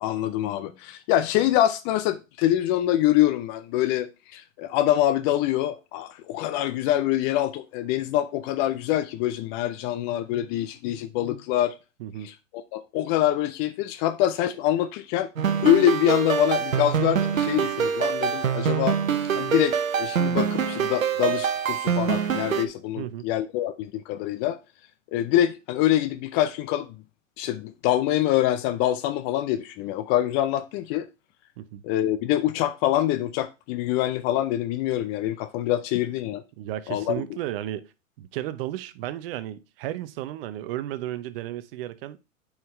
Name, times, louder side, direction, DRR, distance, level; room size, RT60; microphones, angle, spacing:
voice 1, 0.0-11.7 12.2-15.3 15.6-19.0 19.3-24.6 25.1-26.9 27.4-31.1 31.8-36.4 36.9-37.3, left 13 dB, 25° left, 0.4 m, -25 dB
voice 2, 12.0-12.3 23.0-23.3 31.6-31.8 36.6-37.9 38.2-42.2, right 13 dB, 45° right, 0.8 m, -33 dB
sound 1, 15.4-22.7, right 7 dB, 85° right, 0.9 m, -25 dB
9.0 x 4.9 x 3.2 m
hypercardioid pair, 110°, 40 cm